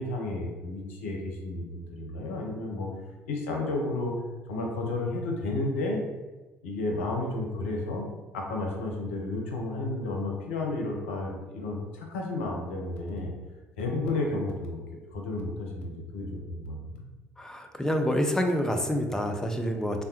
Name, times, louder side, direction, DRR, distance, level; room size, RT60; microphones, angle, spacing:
voice 1, 0.0-2.9 3.3-4.1 4.5-6.0 6.6-8.1 8.3-13.3 13.8-14.8 15.1-17.0, left 2 dB, 75° left, 0 dB, 0.6 m, -32 dB
voice 2, 17.4-20.0, equal, 10° left, 4 dB, 0.5 m, -27 dB
3.3 x 2.1 x 2.8 m, 1.2 s
figure-of-eight pair, 55°, 7 cm